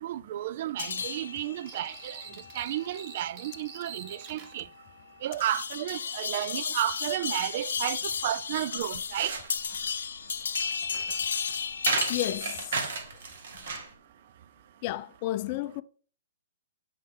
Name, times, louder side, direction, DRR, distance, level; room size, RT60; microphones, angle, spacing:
voice 1, 0.0-2.2 2.5-4.7 5.2-9.3, right 12 dB, 45° right, 0.4 m, -32 dB
sound 1, 0.8-12.6, left 6 dB, 85° left, 0.6 m, -35 dB
sound 2, 1.7-4.6, right 7 dB, 30° right, 0.9 m, -46 dB
sound 3, 8.8-13.9, right 4 dB, 65° right, 1.8 m, -34 dB
voice 2, 12.1-12.9 14.8-15.8, left 15 dB, 35° left, 0.4 m, -32 dB
7.7 x 5.5 x 3.7 m
hypercardioid pair, 155°, 0 cm